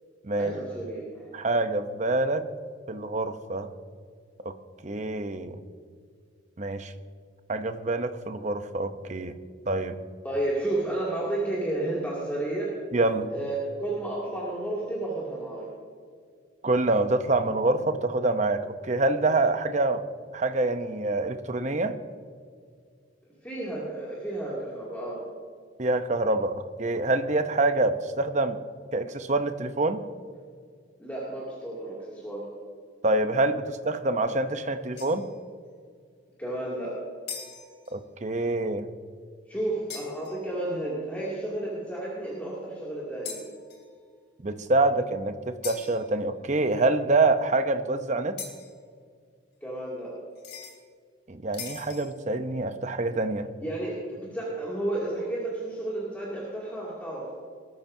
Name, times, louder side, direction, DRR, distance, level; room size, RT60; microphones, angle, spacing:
voice 1, 0.4-1.3 10.2-12.8 13.3-15.7 23.4-25.2 31.0-32.5 36.4-37.0 39.5-43.5 49.6-50.2 53.6-57.3, right 1 dB, 10° left, -7 dB, 2.5 m, -32 dB
voice 2, 1.3-2.5 2.9-3.7 4.4-4.5 4.8-5.6 6.6-6.9 7.5-9.4 9.7-10.0 12.9-13.3 16.6-20.0 20.3-22.0 25.8-28.6 28.9-30.0 33.0-35.2 37.9-38.9 44.4-48.4 51.3-53.5, right 2 dB, 35° right, 9 dB, 0.7 m, -26 dB
sound 1, 35.0-35.4 37.3-38.0 39.9-40.4 43.2-44.0 45.6-46.1 48.4-48.8 50.3-50.8 51.5-52.2, left 6 dB, 55° left, 2.9 m, -41 dB
20.5 x 13.0 x 2.7 m, 2.1 s
head